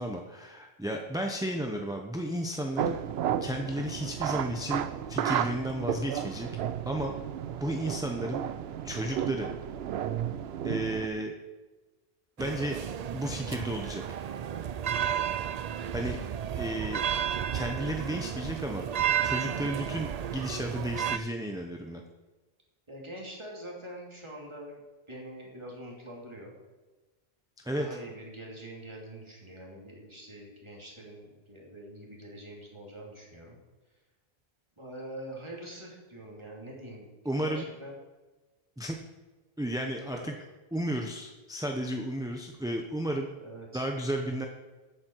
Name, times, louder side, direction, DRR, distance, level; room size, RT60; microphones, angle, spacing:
voice 1, 0.0-3.0 3.4-4.8 5.1-6.5 6.8-7.1 7.6-8.4 8.8-9.5 10.6-11.3 12.4-12.8 13.1-14.2 15.9-16.2 16.5-17.0 17.5-18.9 19.2-22.0 27.6-27.9 37.2-37.6 38.8-39.0 39.6-40.3 40.7-43.3 43.7-44.5, right 1 dB, 5° right, 2 dB, 0.8 m, -33 dB
sound 1, 2.8-11.1, right 9 dB, 85° right, 0.8 m, -33 dB
sound 2, 12.4-21.2, right 9 dB, 55° right, 0.5 m, -32 dB
voice 2, 22.9-24.8 25.1-26.5 27.8-33.6 34.8-37.1 37.4-38.0 40.1-40.3 43.4-43.8, right 1 dB, 30° right, -2 dB, 2.8 m, -44 dB
14.5 x 8.6 x 4.6 m, 1.2 s
omnidirectional pair, 1.0 m